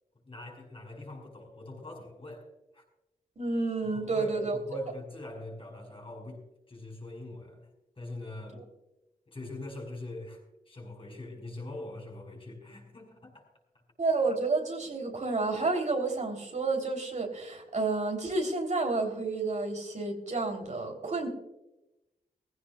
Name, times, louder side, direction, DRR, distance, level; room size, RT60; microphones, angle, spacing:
voice 1, 0.3-2.5 2.7-2.8 3.9-7.6 8.0-8.6 9.3-13.5, left 2 dB, 35° left, 1 dB, 5.3 m, -43 dB
voice 2, 3.4-4.6 8.6-8.7 14.0-21.3, right 3 dB, 55° right, 2 dB, 3.4 m, -30 dB
19.5 x 16.0 x 2.4 m, 0.93 s
wide cardioid pair, 90°, 15 cm